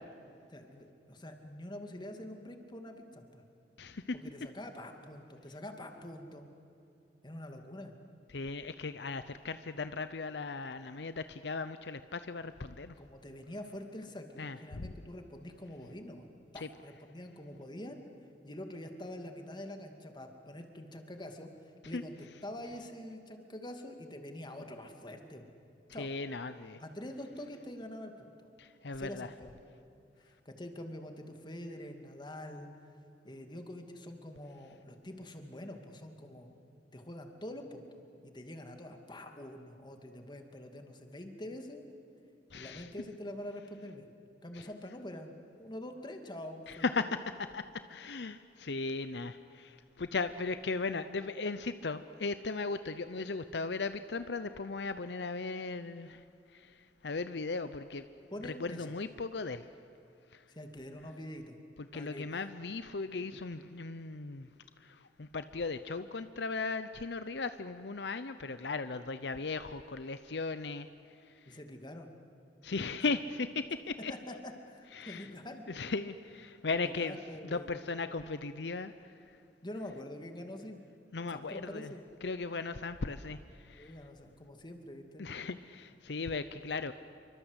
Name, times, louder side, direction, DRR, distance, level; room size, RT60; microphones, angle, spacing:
voice 1, 0.5-3.4 4.2-6.5 7.2-7.9 13.0-16.3 16.5-22.1 22.4-25.5 25.9-26.1 26.8-28.3 28.9-29.5 30.2-32.7 33.2-36.5 36.9-41.8 42.5-44.1 44.4-45.3 45.6-46.8 58.3-58.9 60.5-61.6 61.9-62.2 71.5-72.1 72.9-73.0 74.3-75.6 76.7-77.8 79.6-80.8 81.3-82.0 83.8-85.3, left 1 dB, 25° left, 5 dB, 2.4 m, -45 dB
voice 2, 3.8-4.2 8.3-12.9 14.4-14.9 16.6-16.7 21.9-22.0 26.0-26.8 28.6-29.3 42.5-42.9 44.5-44.7 46.7-58.1 58.6-59.7 60.3-60.4 61.8-64.5 64.8-71.6 72.6-74.4 74.9-75.3 75.7-77.2 77.4-79.4 81.1-81.9 82.2-83.9 85.2-86.9, left 4 dB, 70° left, 11 dB, 0.7 m, -37 dB
27.0 x 24.5 x 8.2 m, 2.6 s
head